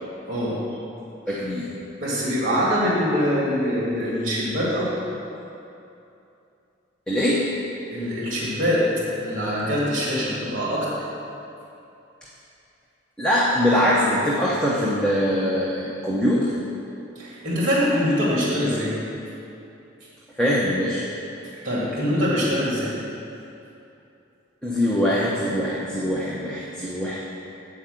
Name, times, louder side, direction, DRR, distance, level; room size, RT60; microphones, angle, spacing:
voice 1, 0.3-0.6 2.0-5.1 7.9-8.9 9.2-10.9 17.2-19.0 21.6-22.9, equal, 40° right, -6 dB, 1.9 m, -23 dB
voice 2, 1.3-1.7 7.1-7.4 13.2-16.5 20.4-21.0 24.6-27.2, equal, 5° left, -7 dB, 0.8 m, -22 dB
8.8 x 4.8 x 7.6 m, 2.8 s
head